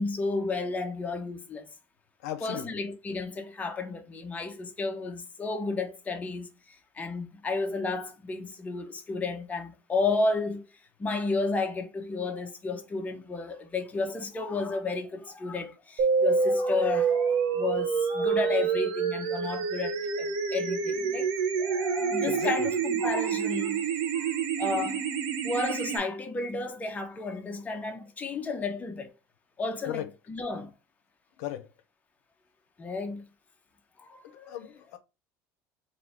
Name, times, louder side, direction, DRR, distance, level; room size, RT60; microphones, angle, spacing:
voice 1, 0.0-1.7 2.4-10.6 11.0-21.3 21.6-23.8 24.1-25.0 25.4-29.1 29.6-30.7 32.8-33.2 34.0-34.7, left 3 dB, 20° left, 0.7 m, -32 dB
voice 2, 2.2-2.7 22.3-22.5 29.9-30.0 31.4-31.6 34.5-35.0, left 12 dB, 85° left, 0.6 m, -35 dB
sound 1, 16.0-26.0, right 5 dB, 70° right, 0.9 m, -27 dB
3.7 x 2.6 x 3.4 m
supercardioid pair, 120°, 8 cm